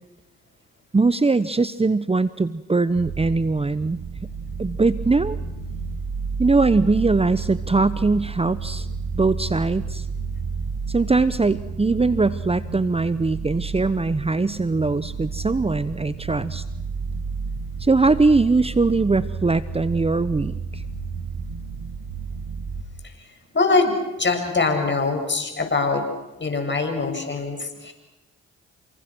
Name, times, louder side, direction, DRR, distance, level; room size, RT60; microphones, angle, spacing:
voice 1, 0.9-4.0 4.6-5.4 6.4-8.9 9.1-10.1 10.9-16.6 17.8-20.8, right 3 dB, 20° right, 15 dB, 1.0 m, -21 dB
sound 1, 2.9-22.8, right 5 dB, 80° right, 2.1 m, -31 dB
voice 2, 23.5-26.0 26.4-27.9, left 3 dB, 40° left, 5 dB, 7.4 m, -23 dB
29.5 x 26.0 x 6.2 m, 0.99 s
supercardioid pair, 50°, 29 cm